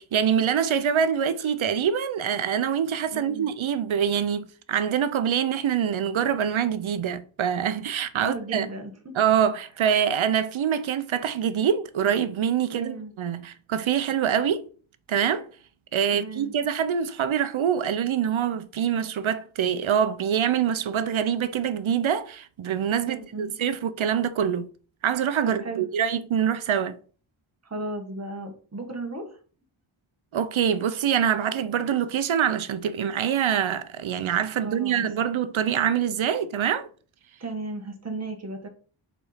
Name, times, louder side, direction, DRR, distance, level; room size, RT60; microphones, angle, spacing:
voice 1, 0.0-8.7 9.1-14.6 15.1-15.5 15.9-24.7 25.0-27.0 30.3-36.9, right 8 dB, 75° right, 0.7 m, -25 dB
voice 2, 3.1-3.5 8.2-9.1 12.7-13.1 16.1-16.5 23.0-23.5 25.4-25.9 27.6-29.4 34.6-35.1 37.4-38.7, right 2 dB, 30° right, 1.5 m, -35 dB
5.1 x 4.3 x 4.9 m
wide cardioid pair, 110°, 48 cm